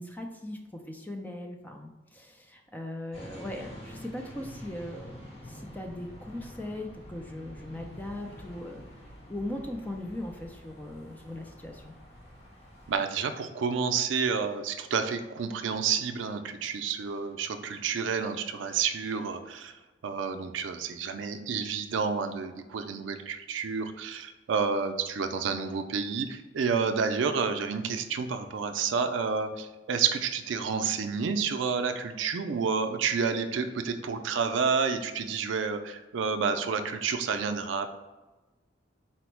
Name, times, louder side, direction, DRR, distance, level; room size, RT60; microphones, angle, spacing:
voice 1, 0.0-8.9 9.3-11.9, left 1 dB, 10° left, 2 dB, 0.3 m, -39 dB
sound 1, 3.1-13.0, equal, 35° left, 0.9 m, -47 dB
voice 2, 12.9-19.7 20.0-37.9, right 5 dB, 75° right, 8 dB, 0.4 m, -29 dB
4.2 x 2.0 x 4.4 m, 1.1 s
head